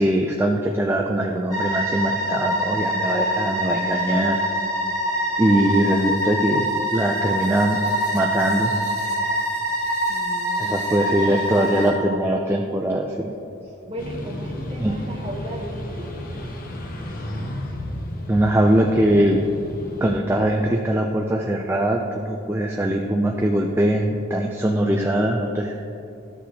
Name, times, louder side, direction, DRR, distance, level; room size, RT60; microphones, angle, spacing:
voice 1, 0.0-4.4 5.4-6.7 6.9-7.8 8.1-8.7 10.6-13.3 14.8-14.9 18.3-19.4 20.0-25.8, right 1 dB, 10° right, 1 dB, 0.3 m, -21 dB
sound 1, 1.5-11.9, equal, 15° left, 1.7 m, -25 dB
voice 2, 10.1-12.0 13.9-16.1, equal, 25° right, -1 dB, 1.0 m, -36 dB
sound 2, 14.0-20.2, left 1 dB, 45° left, 0.8 m, -33 dB
13.0 x 6.3 x 2.8 m, 2.8 s
head